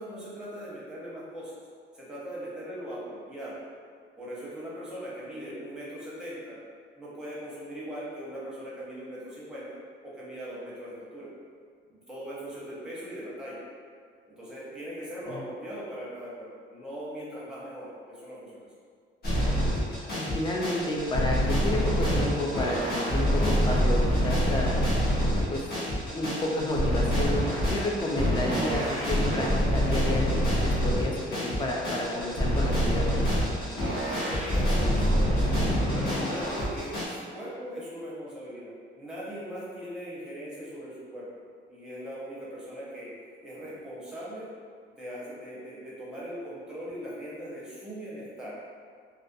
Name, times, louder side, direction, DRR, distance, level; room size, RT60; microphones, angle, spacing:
voice 1, 0.0-1.6 1.9-3.6 4.2-6.6 7.0-11.3 11.8-13.6 14.4-18.7 34.0-41.3 41.7-43.1 43.4-44.5 45.0-48.6, equal, 5° right, -8 dB, 0.7 m, -40 dB
sound 1, 19.2-37.0, equal, 50° left, 0.9 m, -26 dB
voice 2, 20.2-24.8 25.5-25.6 26.1-27.4 27.7-33.4, left 1 dB, 20° left, -1 dB, 0.3 m, -31 dB
2.4 x 2.2 x 2.6 m, 2.1 s
cardioid pair, 135°, 21 cm